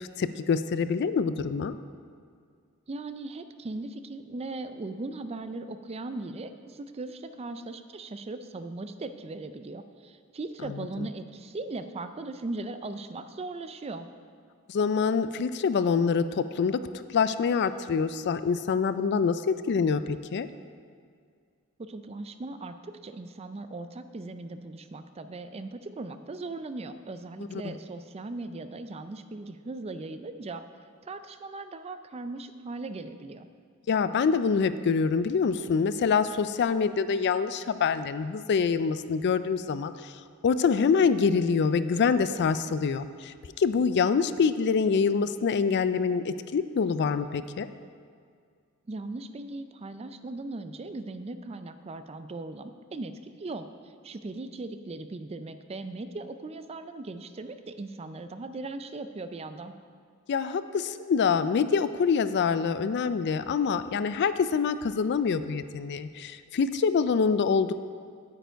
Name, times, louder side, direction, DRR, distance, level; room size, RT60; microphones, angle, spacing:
voice 1, 0.0-1.7 10.7-11.1 14.7-20.5 27.5-27.7 33.9-40.1 40.4-47.7 60.3-67.7, left 5 dB, 50° left, 13 dB, 0.4 m, -26 dB
voice 2, 2.9-14.1 21.8-30.6 31.0-33.5 48.9-59.7, right 2 dB, 30° right, 10 dB, 0.4 m, -38 dB
9.3 x 8.9 x 4.5 m, 2.1 s
head